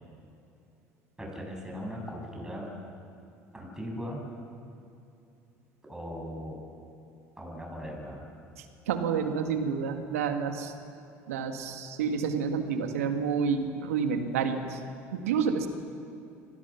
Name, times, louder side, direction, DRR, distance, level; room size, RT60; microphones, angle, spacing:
voice 1, 1.2-2.7 3.5-4.3 5.9-6.6 7.4-8.3, equal, 10° right, -1 dB, 7.4 m, -38 dB
voice 2, 8.6-10.7 11.3-14.8 15.1-15.7, right 6 dB, 85° right, 6 dB, 1.8 m, -29 dB
25.0 x 17.0 x 7.1 m, 2.7 s
hypercardioid pair, 75°, 8 cm